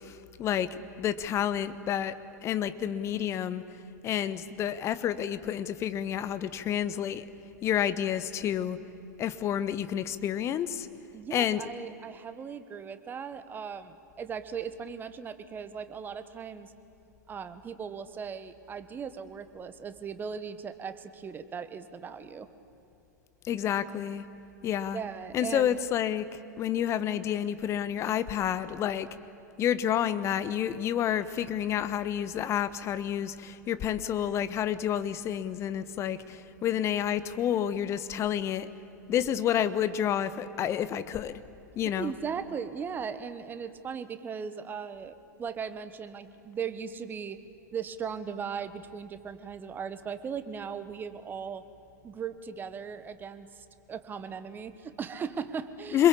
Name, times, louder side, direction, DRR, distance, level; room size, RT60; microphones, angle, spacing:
voice 1, 0.0-2.2 2.4-3.6 4.0-7.2 7.6-8.8 9.2-10.9 11.3-11.7 23.4-24.2 24.6-25.0 25.3-29.1 29.6-38.7 39.1-41.4 41.7-42.1 55.9-56.1, left 10 dB, 30° left, 14 dB, 1.1 m, -29 dB
voice 2, 11.1-16.7 17.3-22.5 24.9-25.7 42.0-47.4 47.7-51.6 52.0-53.5 53.9-56.1, right 6 dB, 20° right, 11 dB, 1.4 m, -38 dB
26.5 x 21.5 x 8.5 m, 2.9 s
figure-of-eight pair, 95°, 10 cm